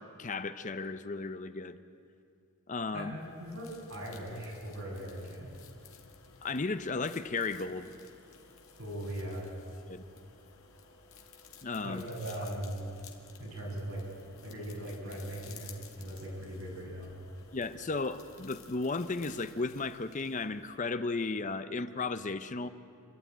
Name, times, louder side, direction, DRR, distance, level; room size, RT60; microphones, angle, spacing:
voice 1, 0.0-1.8 2.7-3.1 6.4-7.9 9.9-10.0 11.6-12.0 17.5-22.7, left 3 dB, 35° left, 11 dB, 0.6 m, -34 dB
voice 2, 2.9-5.5 8.8-9.5 11.8-12.8 13.4-14.1 14.4-17.1, right 1 dB, 70° right, -3 dB, 7.3 m, -39 dB
sound 1, 3.1-20.9, left 6 dB, 70° left, 2.0 m, -55 dB
29.0 x 12.5 x 9.3 m, 2.4 s
head